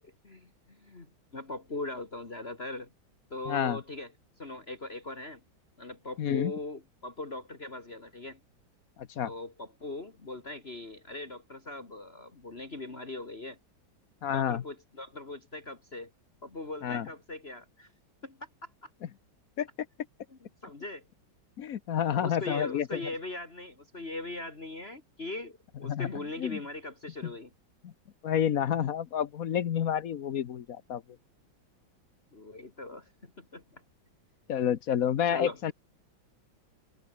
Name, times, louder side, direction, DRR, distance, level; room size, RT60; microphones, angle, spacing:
voice 1, 0.0-1.1 1.3-2.9 3.3-4.1 4.4-5.4 5.8-8.4 9.2-13.6 14.3-16.1 16.4-17.9 18.2-18.9 20.3-21.0 22.2-27.5 32.3-33.8 35.3-35.7, left 2 dB, 30° left, 2.4 m, -40 dB
voice 2, 3.5-3.8 6.2-6.5 9.0-9.3 14.2-14.6 16.8-17.1 19.6-19.7 21.6-23.0 25.8-26.1 26.4-26.6 27.8-27.9 28.2-31.0 34.5-35.7, left 9 dB, 55° left, 1.2 m, -29 dB
omnidirectional pair, 2.1 m